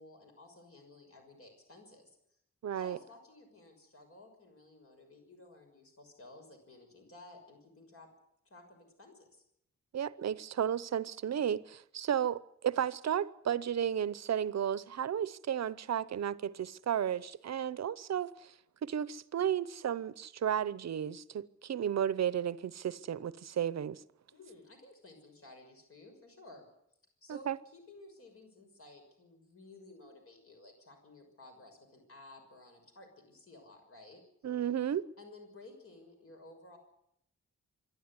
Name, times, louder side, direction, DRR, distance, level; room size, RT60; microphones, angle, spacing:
voice 1, 0.0-2.1 2.7-8.1 8.4-9.4 24.3-26.7 27.2-34.2 35.2-36.8, left 2 dB, 50° left, 6.2 m, -55 dB
voice 2, 2.6-3.0 9.9-18.5 18.8-24.0 27.3-27.6 34.4-35.1, right 9 dB, 65° right, 0.8 m, -33 dB
26.0 x 12.0 x 9.7 m
wide cardioid pair, 180°, 29 cm